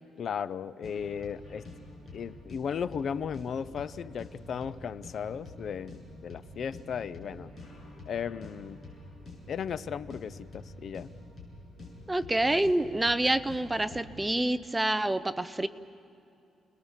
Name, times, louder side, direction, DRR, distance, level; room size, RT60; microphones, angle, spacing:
voice 1, 0.2-1.6 2.1-7.5 8.1-8.8 9.5-11.1, left 7 dB, 50° left, 16 dB, 0.5 m, -36 dB
sound 1, 0.8-14.3, left 2 dB, 30° left, 7.7 m, -47 dB
voice 2, 12.1-15.7, right 1 dB, 10° right, 12 dB, 0.6 m, -27 dB
30.0 x 20.5 x 7.3 m, 2.6 s
cardioid pair, 145°, 0 cm